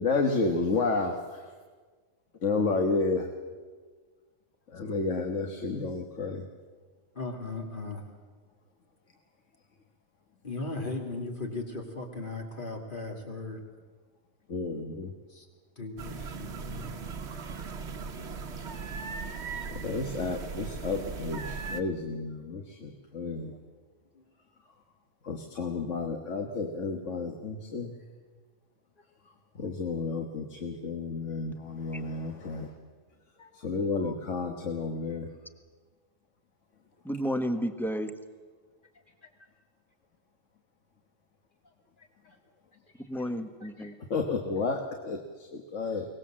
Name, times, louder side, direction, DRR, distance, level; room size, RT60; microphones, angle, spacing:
voice 1, 0.0-1.4 2.4-3.3 4.7-6.4 14.5-15.1 19.8-23.5 25.2-27.9 29.6-32.7 33.6-35.3 44.1-46.0, left 3 dB, 60° left, 4 dB, 1.7 m, -31 dB
voice 2, 7.1-8.0 10.4-13.6 15.3-15.5 15.8-17.0 22.1-22.2 23.4-23.6 24.1-24.3 33.4-34.2 42.0-42.4 42.9-43.0 43.6-43.9, left 2 dB, 35° left, 2 dB, 3.0 m, -38 dB
sound 1, 16.0-21.8, right 5 dB, 55° right, 1.3 m, -38 dB
voice 3, 37.0-38.1 43.1-43.9, equal, ahead, 8 dB, 1.0 m, -31 dB
23.0 x 19.5 x 7.5 m, 1.5 s
omnidirectional pair, 1.5 m